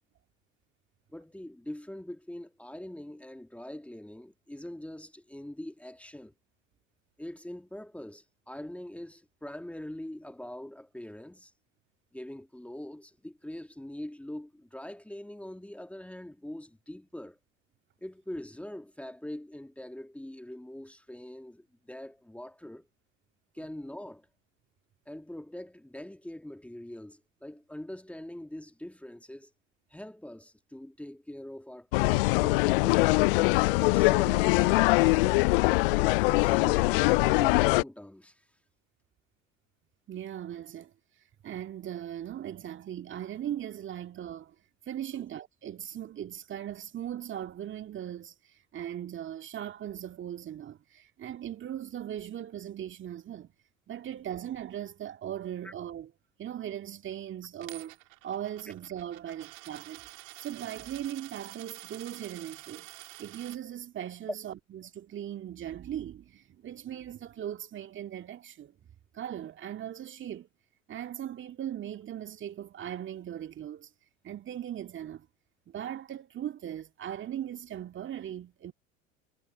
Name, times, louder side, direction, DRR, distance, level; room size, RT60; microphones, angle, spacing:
voice 1, 1.1-6.3 7.2-11.5 12.1-17.4 18.0-22.9 23.5-24.3 25.1-29.5 29.9-33.5 33.8-35.5 35.9-38.4 55.6-55.7, left 1 dB, 5° left, 2.5 m, -43 dB
sound 1, 31.9-37.8, left 24 dB, 45° left, 0.4 m, -23 dB
voice 2, 40.1-40.9 41.4-44.5 44.9-53.5 53.9-56.1 56.4-58.0 58.2-60.0 60.4-68.7 69.1-70.5 70.9-73.9 74.2-75.3 75.7-78.7, right 10 dB, 30° right, 2.2 m, -39 dB
Coin (dropping), 57.6-63.6, right 28 dB, 50° right, 3.9 m, -48 dB
figure-of-eight pair, 80°, 40 cm